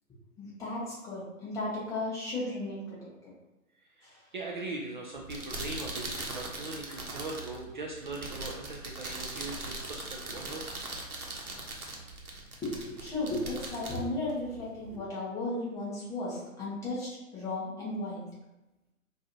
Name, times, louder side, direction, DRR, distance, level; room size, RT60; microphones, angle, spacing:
voice 1, 0.4-3.3 4.0-4.2 12.6-18.3, left 2 dB, 10° left, -7 dB, 0.7 m, -35 dB
voice 2, 4.0-10.7, right 2 dB, 35° right, -1 dB, 0.4 m, -40 dB
sound 1, 5.1-15.0, right 2 dB, 85° right, 1.0 m, -40 dB
4.8 x 2.6 x 2.6 m, 0.98 s
figure-of-eight pair, 125°, 43 cm